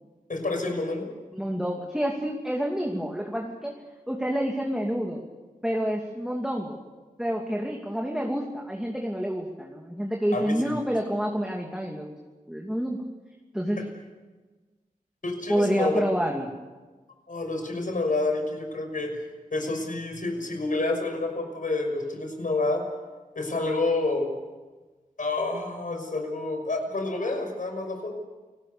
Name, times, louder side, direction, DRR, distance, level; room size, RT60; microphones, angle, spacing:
voice 1, 0.3-1.1 10.3-10.8 15.2-16.0 17.3-19.2 19.5-22.8 23.3-24.3 25.2-28.1, left 2 dB, 65° left, 4 dB, 6.0 m, -28 dB
voice 2, 1.3-3.7 4.1-5.2 5.6-6.8 7.2-12.1 12.5-13.0 13.5-13.8 15.5-16.5, equal, 5° right, 0 dB, 2.8 m, -28 dB
29.0 x 19.5 x 7.0 m, 1.3 s
wide cardioid pair, 65°, 15 cm